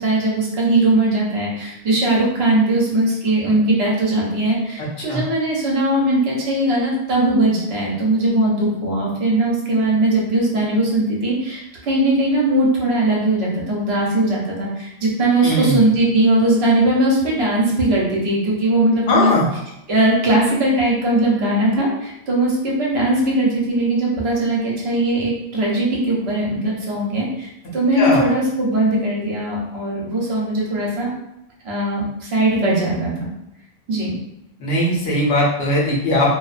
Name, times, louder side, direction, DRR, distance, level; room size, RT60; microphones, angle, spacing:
voice 1, 0.0-19.3 19.9-31.1 31.6-33.3 33.9-34.2, right 1 dB, 70° right, -4 dB, 1.0 m, -19 dB
voice 2, 15.4-15.8 19.1-19.5 28.0-28.3 34.6-36.3, left 1 dB, 65° left, -5 dB, 0.9 m, -19 dB
2.6 x 2.2 x 2.4 m, 0.87 s
omnidirectional pair, 1.1 m